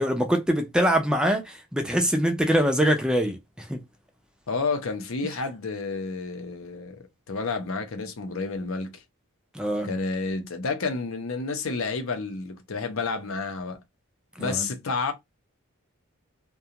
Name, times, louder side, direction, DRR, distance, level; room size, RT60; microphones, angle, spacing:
voice 1, 0.0-3.8 9.5-9.9 14.4-14.7, equal, 5° right, 0.4 m, -24 dB
voice 2, 4.5-9.0 9.8-13.8 14.4-15.1, left 4 dB, 65° left, 0.7 m, -30 dB
2.4 x 2.3 x 2.8 m
head